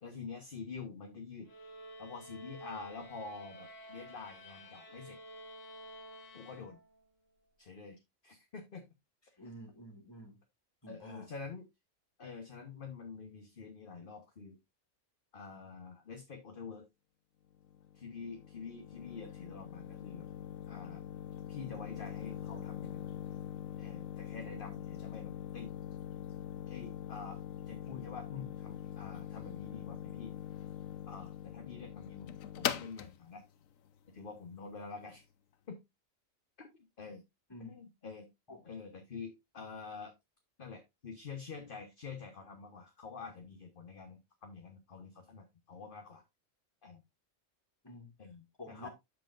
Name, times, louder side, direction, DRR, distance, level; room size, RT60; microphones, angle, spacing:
voice 1, 0.0-1.5 2.0-5.2 6.3-6.8 7.6-8.0 8.2-8.8 10.9-11.7 12.2-14.6 15.3-16.8 17.9-20.3 20.7-21.0 21.5-23.0 23.8-25.7 26.7-27.4 27.7-30.3 31.1-33.4 34.1-35.2 35.7-35.8 36.6-36.7 37.0-37.2 37.6-38.3 38.6-40.1 40.6-46.2 46.8-47.0 48.2-48.9, left 5 dB, 45° left, 1.2 m, -47 dB
sound 1, 1.4-7.1, equal, 70° left, 1.9 m, -51 dB
voice 2, 9.4-10.4 10.8-11.3 37.5-37.8 38.5-38.6 47.8-48.1 48.6-48.9, equal, 20° left, 2.3 m, -49 dB
sound 2, 17.5-35.2, left 9 dB, 85° left, 1.1 m, -43 dB
13.5 x 4.7 x 2.5 m
omnidirectional pair, 1.4 m